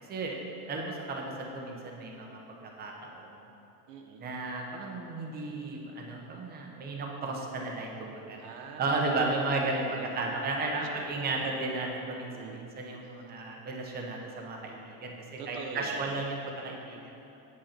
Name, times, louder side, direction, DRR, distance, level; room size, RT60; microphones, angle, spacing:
voice 1, 0.7-2.4 2.8-3.4 4.2-8.4 8.8-9.8 10.1-17.0, right 3 dB, 20° right, 0 dB, 0.9 m, -34 dB
voice 2, 3.9-4.4 8.4-9.4 9.7-10.4 10.7-11.5 12.3-12.7 15.4-16.2, right 5 dB, 55° right, 2 dB, 0.8 m, -44 dB
8.4 x 7.8 x 4.4 m, 2.9 s
supercardioid pair, 150°, 47 cm